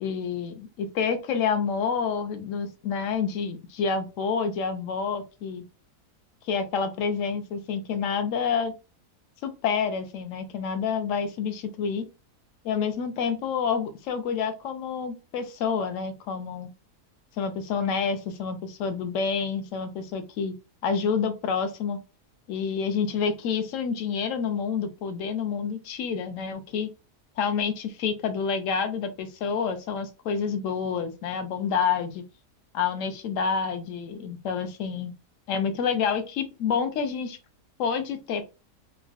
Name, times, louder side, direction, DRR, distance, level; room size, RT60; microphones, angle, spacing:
voice 1, 0.0-5.6 6.4-8.7 9.4-12.1 12.6-16.7 17.4-20.5 20.8-22.0 22.5-26.9 27.4-32.3 32.7-35.1 35.5-37.4 37.8-38.4, left 6 dB, 65° left, 0.9 m, -28 dB
3.7 x 2.1 x 2.3 m
omnidirectional pair, 1.7 m